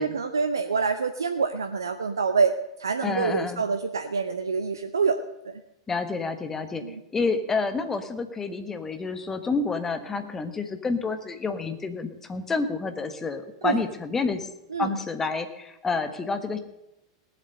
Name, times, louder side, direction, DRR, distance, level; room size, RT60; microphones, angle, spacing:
voice 1, 0.0-2.5 2.8-5.2 5.4-5.6 6.8-7.0 13.6-13.8 14.7-15.0, right 5 dB, 75° right, 9 dB, 0.7 m, -26 dB
voice 2, 3.0-3.6 5.9-6.8 7.1-14.5 14.8-16.6, left 4 dB, 15° left, 8 dB, 1.4 m, -29 dB
18.0 x 7.8 x 6.7 m, 0.89 s
figure-of-eight pair, 90°, 2 cm